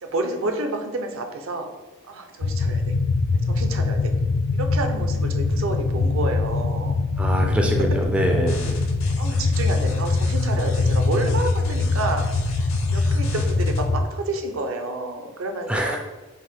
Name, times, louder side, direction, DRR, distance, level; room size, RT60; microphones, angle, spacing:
voice 1, 0.0-1.7 2.1-2.9 3.4-4.1 4.5-7.0 9.2-12.2 12.9-16.0, right 2 dB, 65° right, 5 dB, 0.5 m, -29 dB
sound 1, 2.4-14.0, left 3 dB, 85° left, 0.4 m, -23 dB
voice 2, 7.2-8.8 15.7-16.0, equal, 5° right, 1 dB, 0.3 m, -23 dB
sound 2, 8.5-13.8, left 4 dB, 65° left, 0.9 m, -40 dB
5.3 x 2.1 x 3.6 m, 1.2 s
head